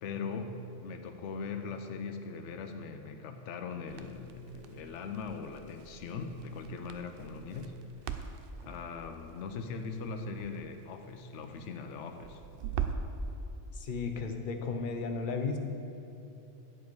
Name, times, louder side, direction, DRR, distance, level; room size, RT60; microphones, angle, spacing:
voice 1, 0.0-7.7 8.6-12.4, left 4 dB, 75° left, 6 dB, 0.9 m, -40 dB
Crackle, 3.9-13.2, right 7 dB, 60° right, 0.7 m, -42 dB
voice 2, 13.7-15.6, left 4 dB, 50° left, 5 dB, 0.8 m, -34 dB
10.0 x 7.4 x 4.6 m, 3.0 s
omnidirectional pair, 1.2 m